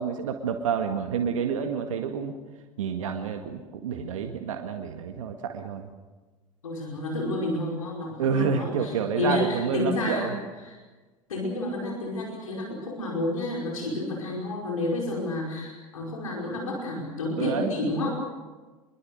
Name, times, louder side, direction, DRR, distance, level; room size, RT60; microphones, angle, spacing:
voice 1, 0.0-2.4 2.8-5.9 8.2-10.3 17.4-17.7, right 6 dB, 65° right, 5 dB, 1.9 m, -28 dB
voice 2, 6.6-10.4 10.6-10.8 11.3-18.1, left 2 dB, 75° left, -1 dB, 5.3 m, -30 dB
26.0 x 22.5 x 6.5 m, 1.3 s
figure-of-eight pair, 75°, 18 cm